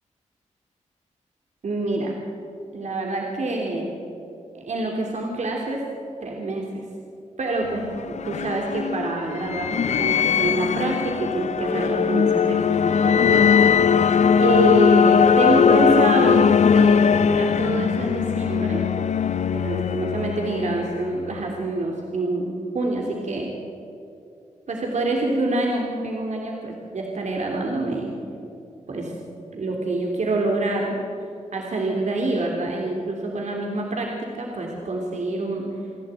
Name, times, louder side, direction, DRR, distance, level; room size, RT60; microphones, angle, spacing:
voice 1, 1.6-2.1 2.7-3.9 4.5-5.8 6.2-6.8 7.4-13.9 14.4-18.8 19.5-23.5 24.7-28.1 28.9-29.1 29.5-31.0 31.5-35.7, right 2 dB, 65° right, 0 dB, 3.4 m, -26 dB
sound 1, 7.6-21.4, left 7 dB, 65° left, 0.6 m, -20 dB
29.0 x 12.0 x 9.0 m, 2.6 s
cardioid pair, 70°, 13 cm